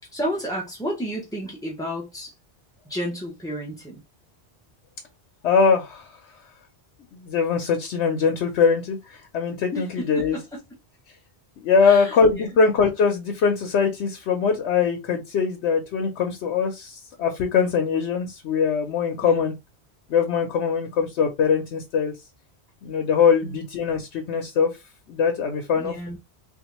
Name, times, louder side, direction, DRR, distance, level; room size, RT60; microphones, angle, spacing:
voice 1, 0.1-2.3 2.9-4.0 9.7-10.4 11.8-12.5 19.2-19.4 23.4-23.6 25.8-26.2, equal, 5° left, 0.5 m, -31 dB
voice 2, 5.4-6.1 7.1-10.4 11.6-19.5 20.1-22.1 22.8-24.7 25.1-26.2, left 5 dB, 90° left, 1.0 m, -22 dB
3.5 x 2.5 x 2.9 m
omnidirectional pair, 1.1 m